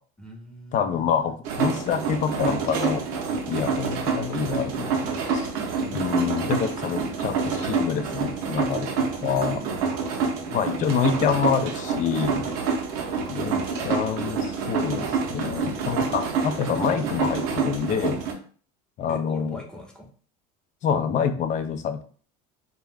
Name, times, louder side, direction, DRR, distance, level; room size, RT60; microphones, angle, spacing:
voice 1, 0.2-1.4 5.8-6.7 10.1-10.8 13.2-14.1 19.1-20.1, right 1 dB, 5° left, 0 dB, 0.6 m, -43 dB
voice 2, 0.7-3.0 3.5-5.5 5.9-9.6 10.5-12.5 13.3-13.6 13.8-18.2 19.0-19.6 20.8-22.0, left 7 dB, 40° left, 9 dB, 0.4 m, -27 dB
sound 1, 1.4-18.3, right 5 dB, 80° right, 0.6 m, -27 dB
2.3 x 2.1 x 3.3 m, 0.43 s
supercardioid pair, 115°, 19 cm